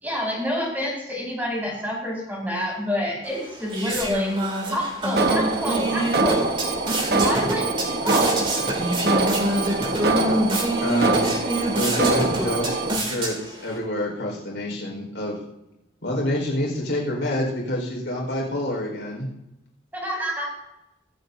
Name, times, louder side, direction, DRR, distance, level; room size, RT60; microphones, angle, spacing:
voice 1, 0.0-4.3 4.7-6.4 7.1-7.7 8.0-8.4 20.0-20.4, equal, 10° right, -3 dB, 4.8 m, -27 dB
sound 1, 3.2-13.8, right 1 dB, 30° right, 2.6 m, -27 dB
Alarm, 5.2-13.0, right 3 dB, 60° right, 1.1 m, -24 dB
voice 2, 10.8-15.4 16.0-19.3, left 1 dB, 85° left, -2 dB, 4.5 m, -28 dB
23.0 x 7.9 x 2.7 m, 0.92 s
head